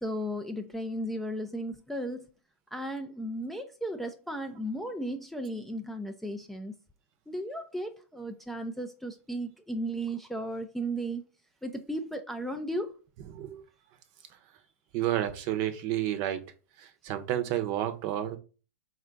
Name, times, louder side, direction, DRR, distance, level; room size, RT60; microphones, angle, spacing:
voice 1, 0.0-2.3 2.7-6.8 7.3-11.2 11.6-12.9, right 1 dB, ahead, 0.3 m, -35 dB
voice 2, 13.3-13.6 14.9-16.4 16.8-18.4, right 12 dB, 40° right, 0.7 m, -30 dB
4.2 x 2.3 x 3.8 m
hypercardioid pair, 120°, 8 cm